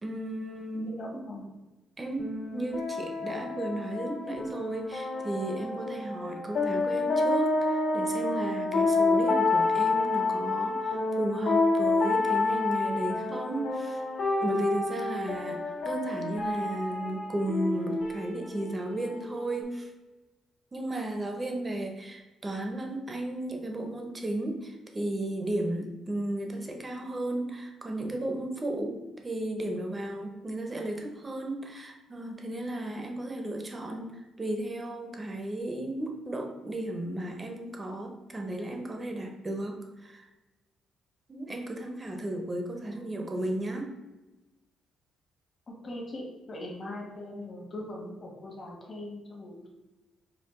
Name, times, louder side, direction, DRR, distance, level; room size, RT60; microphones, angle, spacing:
voice 1, 0.0-1.4 2.0-14.0 14.4-19.9 20.7-40.3 41.3-43.9, right 1 dB, 25° right, 3 dB, 0.7 m, -34 dB
voice 2, 0.7-1.6 42.8-43.0 45.8-49.7, left 1 dB, 40° left, -1 dB, 1.2 m, -40 dB
sound 1, 2.2-19.6, left 3 dB, 75° left, 1.4 m, -29 dB
4.6 x 2.4 x 3.6 m, 1.1 s
cardioid pair, 90°, 0 cm